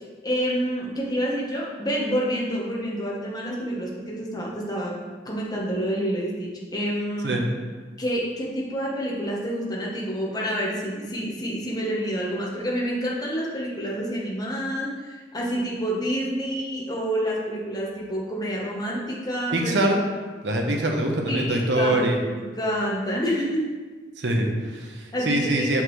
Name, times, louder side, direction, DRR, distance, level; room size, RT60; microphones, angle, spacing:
voice 1, 0.2-4.9 5.2-7.4 8.0-19.7 21.3-22.1 22.4-23.6 25.1-25.7, equal, 20° left, -4 dB, 1.1 m, -28 dB
voice 2, 19.5-20.0 20.4-22.2 24.2-25.8, right 1 dB, 85° right, 1 dB, 0.9 m, -24 dB
6.1 x 5.7 x 3.1 m, 1.4 s
head